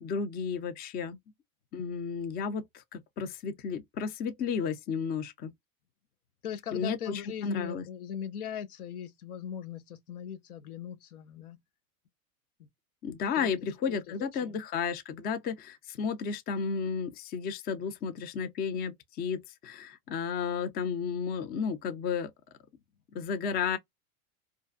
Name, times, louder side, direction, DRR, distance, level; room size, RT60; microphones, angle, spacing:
voice 1, 0.0-1.2 1.7-5.5 6.7-7.8 13.0-22.3 23.1-23.8, left 6 dB, 25° left, 0.4 m, -33 dB
voice 2, 6.4-11.6 12.6-12.7 13.3-13.5 13.9-14.0 14.4-14.6, left 8 dB, 85° left, 0.7 m, -39 dB
2.5 x 2.2 x 2.4 m
hypercardioid pair, 100°, 43 cm